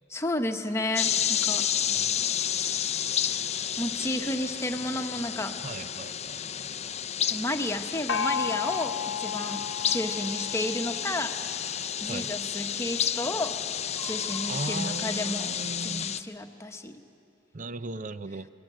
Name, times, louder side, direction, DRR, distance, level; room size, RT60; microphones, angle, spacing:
voice 1, 0.1-1.6 3.8-5.6 7.3-11.3 12.0-13.6 14.0-17.0, left 1 dB, 15° left, 5 dB, 1.1 m, -32 dB
sound 1, 1.0-16.2, left 9 dB, 35° left, 0.6 m, -31 dB
voice 2, 1.9-2.2 5.6-6.7 12.1-12.3 14.5-16.1 17.5-18.5, right 2 dB, 40° right, 13 dB, 0.6 m, -38 dB
Crying sobbing, 7.3-7.5 9.9-10.1 11.7-11.8 12.3-12.4 12.6-12.7 13.8-14.8 15.8-16.1 16.7-16.8, right 2 dB, 55° right, 3.4 m, -46 dB
Gong, 8.1-11.6, left 6 dB, 75° left, 0.9 m, -33 dB
27.0 x 21.5 x 7.7 m, 2.6 s
head